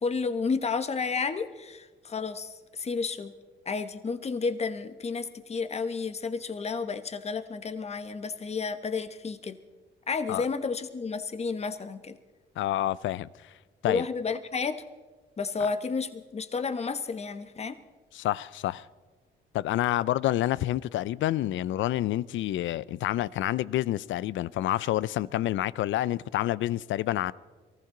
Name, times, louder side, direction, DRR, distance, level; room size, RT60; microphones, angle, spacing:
voice 1, 0.0-3.3 3.7-9.6 10.1-12.1 13.9-14.8 15.4-17.8, left 4 dB, 30° left, 1.1 m, -31 dB
voice 2, 12.6-13.3 13.8-14.0 18.1-18.9 19.5-27.3, left 14 dB, 75° left, 0.5 m, -28 dB
23.5 x 14.5 x 3.8 m
cardioid pair, 90°, 20 cm